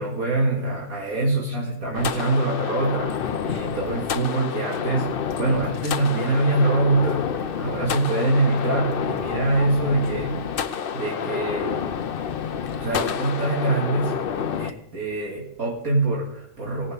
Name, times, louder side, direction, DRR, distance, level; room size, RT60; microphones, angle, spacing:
voice 1, 0.0-10.5 10.9-11.8 12.7-14.1 14.6-16.9, right 2 dB, 65° right, -3 dB, 2.6 m, -24 dB
sound 1, 1.9-14.7, left 7 dB, 50° left, 0.7 m, -29 dB
18.5 x 11.0 x 5.1 m, 0.84 s
omnidirectional pair, 1.6 m